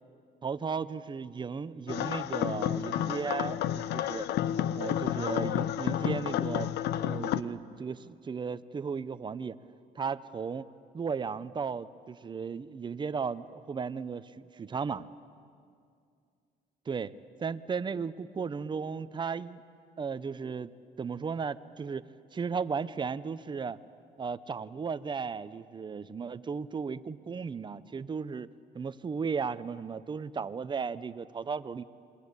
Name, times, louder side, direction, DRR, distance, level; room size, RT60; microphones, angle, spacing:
voice 1, 0.4-4.3 4.8-9.6 9.9-10.7 10.9-15.1 16.9-17.1 17.4-19.6 20.0-20.7 21.0-23.8 24.2-28.5 28.7-31.8, right 5 dB, 25° right, 14 dB, 0.8 m, -35 dB
sound 1, 1.9-7.4, left 11 dB, 80° left, 0.8 m, -31 dB
27.5 x 23.0 x 8.3 m, 2.3 s
cardioid pair, 110°, 17 cm